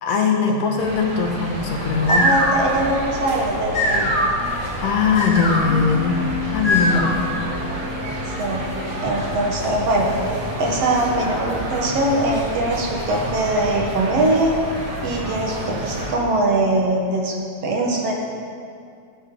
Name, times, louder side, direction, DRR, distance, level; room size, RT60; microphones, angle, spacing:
voice 1, 0.0-2.3 4.8-6.2 6.5-7.2, left 5 dB, 65° left, 2 dB, 2.1 m, -20 dB
sound 1, 0.8-16.1, right 1 dB, 90° right, 3.7 m, -30 dB
sound 2, 1.8-7.4, left 1 dB, 35° left, 3.0 m, -23 dB
voice 2, 2.0-4.1 8.4-8.6 9.0-10.1 10.6-14.5 15.0-17.4 17.6-18.1, right 1 dB, 60° right, -1 dB, 2.4 m, -21 dB
Bass guitar, 5.7-11.9, left 3 dB, 85° left, 3.2 m, -34 dB
19.5 x 9.8 x 3.9 m, 2.4 s
omnidirectional pair, 3.3 m